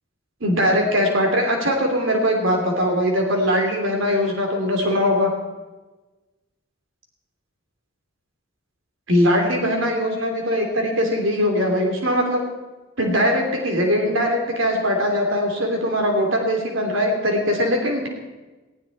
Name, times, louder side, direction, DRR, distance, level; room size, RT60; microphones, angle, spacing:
voice 1, 0.4-5.3 9.1-12.4 13.0-18.1, equal, 80° right, 2 dB, 3.3 m, -21 dB
19.5 x 17.5 x 4.3 m, 1.2 s
head